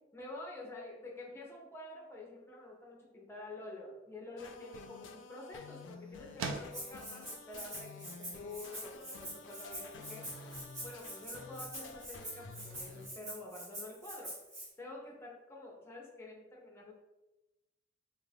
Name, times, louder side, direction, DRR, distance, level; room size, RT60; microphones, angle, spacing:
voice 1, 0.1-14.4 14.8-16.9, left 2 dB, 15° left, -1 dB, 0.6 m, -48 dB
sound 1, 4.4-13.1, left 4 dB, 70° left, 0.3 m, -51 dB
sound 2, 4.4-14.1, right 4 dB, 90° right, 0.3 m, -50 dB
Rattle (instrument), 6.7-14.7, right 1 dB, 35° right, 1.2 m, -45 dB
2.8 x 2.4 x 3.3 m, 0.99 s
head